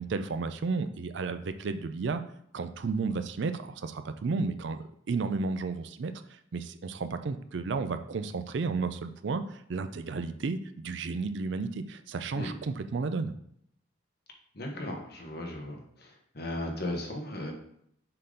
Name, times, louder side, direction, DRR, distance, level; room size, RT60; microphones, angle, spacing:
voice 1, 0.0-2.2 2.5-4.8 5.1-6.1 6.5-13.3, right 4 dB, 65° right, 10 dB, 0.4 m, -32 dB
voice 2, 14.5-16.1 16.3-17.5, left 1 dB, 50° left, 1 dB, 1.2 m, -36 dB
6.6 x 3.8 x 3.8 m, 0.71 s
head